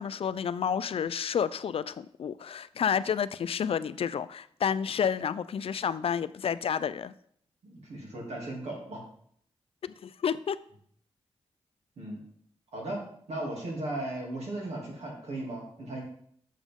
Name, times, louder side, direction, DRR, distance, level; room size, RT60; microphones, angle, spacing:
voice 1, 0.0-7.1 9.8-10.6, left 7 dB, 60° left, 15 dB, 0.4 m, -30 dB
voice 2, 7.6-9.1 12.0-12.2 12.7-13.0 13.3-16.0, right 1 dB, 85° right, -2 dB, 2.6 m, -36 dB
7.3 x 7.1 x 3.6 m, 0.65 s
cardioid pair, 65°, 11 cm